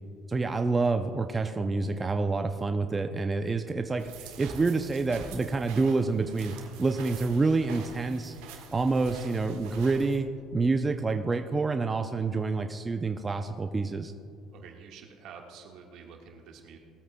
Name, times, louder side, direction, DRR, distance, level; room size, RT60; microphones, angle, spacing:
voice 1, 0.3-8.4 8.7-14.1, right 3 dB, 20° right, 6 dB, 0.5 m, -28 dB
sound 1, 4.0-10.1, right 5 dB, 90° right, 1.5 m, -46 dB
voice 2, 14.5-16.8, right 6 dB, 65° right, 2 dB, 1.5 m, -48 dB
18.5 x 8.4 x 2.2 m, 2.2 s
supercardioid pair, 105°, 0 cm